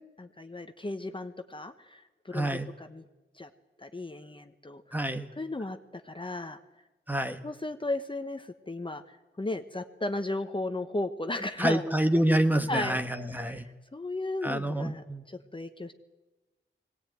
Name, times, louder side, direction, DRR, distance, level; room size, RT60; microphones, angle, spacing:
voice 1, 0.2-3.1 3.3-3.5 3.8-5.8 6.0-6.6 7.4-11.9 12.7-13.0 13.4-13.6 13.9-15.9, left 2 dB, 25° left, 7 dB, 1.1 m, -35 dB
voice 2, 2.3-2.7 4.9-5.3 7.1-7.4 11.6-13.6 14.4-15.2, right 1 dB, 10° right, 8 dB, 1.3 m, -27 dB
22.0 x 18.0 x 9.3 m, 1.1 s
wide cardioid pair, 100°, 20 cm